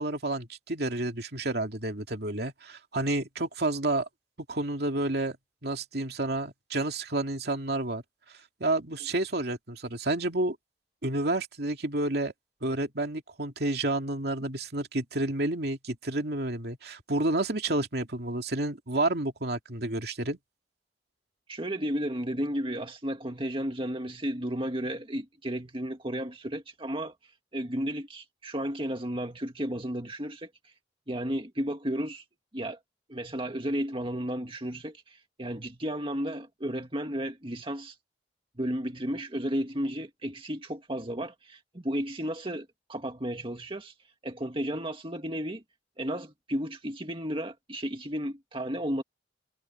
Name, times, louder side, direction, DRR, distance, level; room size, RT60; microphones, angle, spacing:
voice 1, 0.0-4.1 4.5-5.4 5.6-8.0 8.6-10.6 11.0-12.3 12.6-20.4, right 2 dB, 60° right, 2.7 m, -30 dB
voice 2, 21.5-27.1 27.5-30.5 31.1-32.2 32.5-32.8 33.1-38.0 38.6-43.9 44.2-45.6 46.0-49.0, equal, 30° right, 2.1 m, -33 dB
head